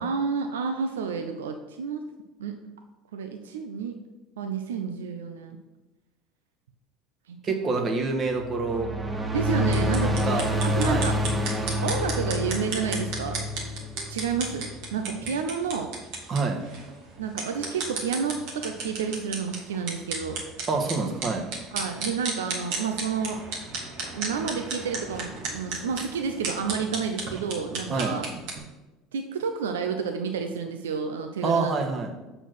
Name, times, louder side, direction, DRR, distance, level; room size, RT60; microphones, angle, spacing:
voice 1, 0.0-2.0 2.4-2.6 3.1-4.0 4.4-5.6 7.3-7.5 9.3-11.2 11.8-13.4 14.1-15.9 17.2-20.4 21.7-23.4 24.1-28.3 29.1-31.8, right 6 dB, 85° right, 5 dB, 0.5 m, -30 dB
voice 2, 7.4-8.9 10.2-10.4 10.8-11.1 16.3-16.6 20.7-21.5 27.9-28.1 31.4-32.1, right 4 dB, 40° right, 2 dB, 1.4 m, -27 dB
sound 1, 8.3-14.9, equal, 15° right, 1.1 m, -28 dB
sound 2, 9.7-28.6, right 3 dB, 70° right, 1.9 m, -35 dB
6.4 x 4.5 x 6.0 m, 1.1 s
hypercardioid pair, 75°, 0 cm